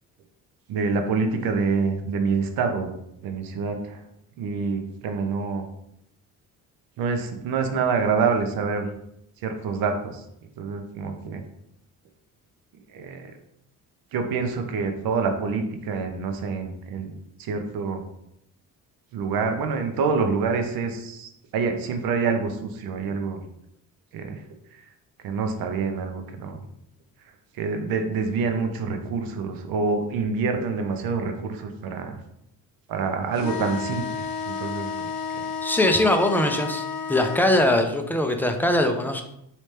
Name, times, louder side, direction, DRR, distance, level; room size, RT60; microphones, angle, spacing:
voice 1, 0.7-2.9 3.2-4.0 4.4-5.6 7.0-8.9 9.4-10.2 10.6-11.4 12.9-13.3 14.1-17.1 17.4-18.0 19.1-23.4 24.1-24.4 25.2-26.6 27.6-32.2 32.9-35.5, right 5 dB, 70° right, 5 dB, 0.7 m, -26 dB
sound 1, 33.3-37.5, left 6 dB, 70° left, 0.5 m, -31 dB
voice 2, 35.6-36.8 37.1-39.2, left 1 dB, 5° left, 5 dB, 0.3 m, -21 dB
3.2 x 2.8 x 3.2 m, 0.78 s
cardioid pair, 90°, 36 cm